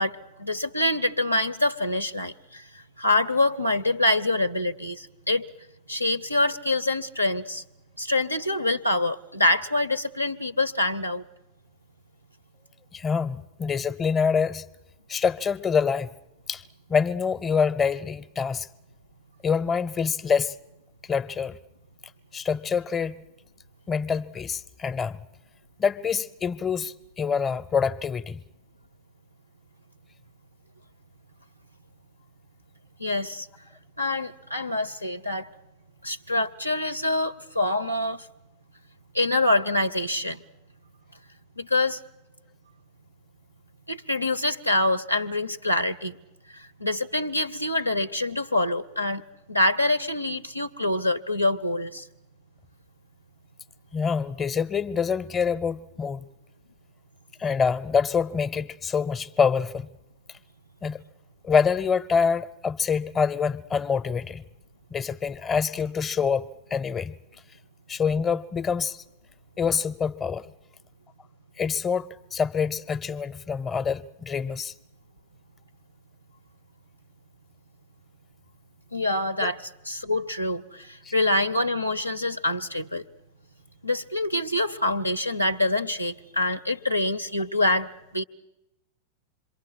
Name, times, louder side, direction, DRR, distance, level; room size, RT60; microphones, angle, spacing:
voice 1, 0.0-2.6 3.0-5.5 5.9-7.6 8.0-11.2 33.0-33.5 34.0-35.5 36.0-38.3 39.1-40.4 41.6-42.0 43.9-46.2 46.6-49.2 49.5-52.1 78.9-83.0 83.8-88.2, left 2 dB, 90° left, 0.8 m, -25 dB
voice 2, 12.9-14.7 15.1-16.1 16.5-16.6 16.9-18.7 19.4-20.5 21.1-21.6 22.3-23.2 23.9-25.2 25.8-28.4 53.9-56.2 57.4-59.9 60.8-61.0 61.4-64.4 64.9-67.1 67.9-69.0 69.6-70.5 71.6-74.7 79.4-79.5 81.0-81.1, left 6 dB, 20° left, 0.8 m, -26 dB
27.0 x 23.0 x 6.5 m
figure-of-eight pair, 90°, 0 cm